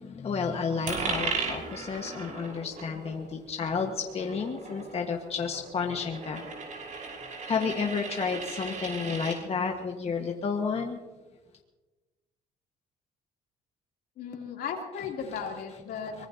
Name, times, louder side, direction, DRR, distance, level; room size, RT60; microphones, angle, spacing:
voice 1, 0.0-6.4 7.4-11.0 16.2-16.3, left 5 dB, 35° left, 1 dB, 1.5 m, -31 dB
Coin (dropping), 0.9-9.4, right 4 dB, 50° right, 5.7 m, -37 dB
voice 2, 14.2-16.3, left 6 dB, 70° left, 1 dB, 3.2 m, -36 dB
23.5 x 20.5 x 2.9 m, 1.2 s
cardioid pair, 110°, 17 cm